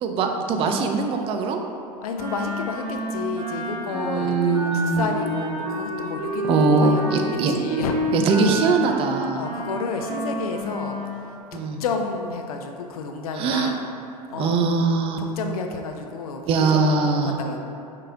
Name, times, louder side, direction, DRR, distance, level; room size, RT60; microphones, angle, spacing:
voice 1, 0.0-1.6 3.9-5.1 6.5-7.5 8.1-9.4 11.5-11.8 13.4-13.7 14.4-15.2 16.5-17.3, right 4 dB, 30° right, 4 dB, 0.4 m, -21 dB
voice 2, 2.0-8.0 9.3-11.2 11.5-13.9 14.3-14.6 15.2-17.6, left 4 dB, 65° left, 4 dB, 0.4 m, -31 dB
Wind instrument woodwind instrument, 2.1-11.2, right 1 dB, 80° right, 0.8 m, -29 dB
4.8 x 3.7 x 2.3 m, 2.6 s
figure-of-eight pair, 80°, 21 cm